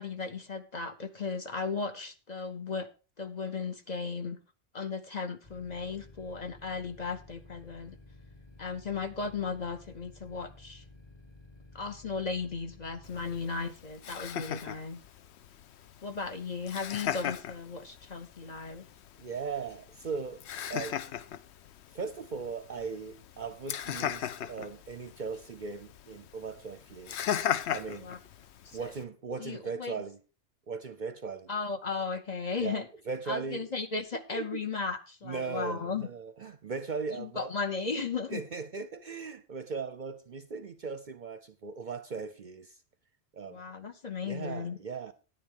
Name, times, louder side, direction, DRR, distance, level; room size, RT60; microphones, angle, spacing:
voice 1, 0.0-2.9 3.2-4.4 4.7-8.0 8.6-10.8 11.7-15.0 16.0-18.8 28.0-28.2 28.6-28.9 29.4-29.9 31.5-32.9 33.3-36.1 37.1-38.4 43.5-44.8, left 4 dB, 40° left, 0.8 m, -36 dB
sound 1, 5.4-13.5, left 2 dB, 25° left, 1.2 m, -53 dB
Laughter, 13.0-29.0, left 10 dB, 70° left, 0.9 m, -38 dB
voice 2, 19.2-20.4 20.7-21.0 21.9-27.2 27.7-28.1 28.7-30.2 30.7-31.5 32.6-33.7 34.3-34.6 35.2-37.5 38.3-42.8 43.3-43.6 44.2-45.1, right 5 dB, 50° right, 0.6 m, -38 dB
10.0 x 10.0 x 3.7 m
omnidirectional pair, 1.2 m